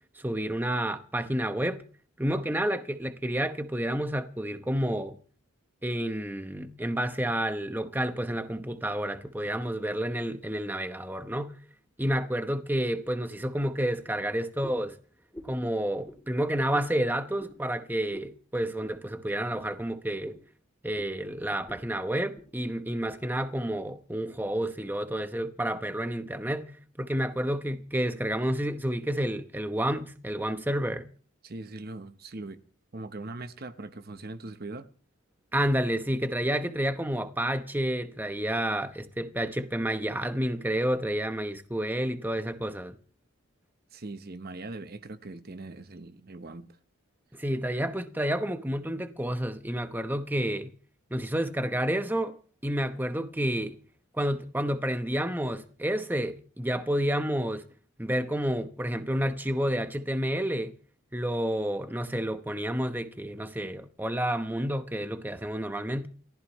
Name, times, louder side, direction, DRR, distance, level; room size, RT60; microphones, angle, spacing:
voice 1, 0.1-1.8 2.2-5.2 5.8-11.6 12.0-15.0 15.4-20.4 20.8-31.1 35.5-43.0 47.3-50.7 51.1-52.3 52.6-53.8 54.1-57.6 58.0-60.7 61.1-66.1, equal, 10° right, 0.9 m, -30 dB
sound 1, 14.6-14.9 15.3-15.6 16.0-16.2 16.7-16.9 17.4-17.6 18.1-18.3 18.8-19.0 19.5-19.7 20.2-20.4 21.0-21.1 21.7-21.8 22.1-22.5 23.0-23.2 23.8-23.9, left 1 dB, 10° left, 3.2 m, -47 dB
voice 2, 31.4-32.6 32.9-34.9 43.9-46.8, right 2 dB, 45° right, 0.9 m, -41 dB
29.5 x 15.0 x 3.1 m
head